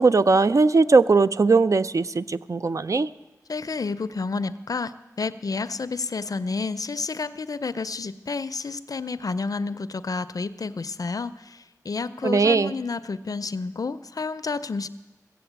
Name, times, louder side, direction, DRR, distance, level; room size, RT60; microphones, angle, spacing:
voice 1, 0.0-3.1 12.2-12.7, right 4 dB, 55° right, 13 dB, 0.4 m, -19 dB
voice 2, 3.5-14.9, left 4 dB, 65° left, 13 dB, 0.5 m, -30 dB
15.5 x 7.7 x 8.0 m, 1.1 s
wide cardioid pair, 65°, 7 cm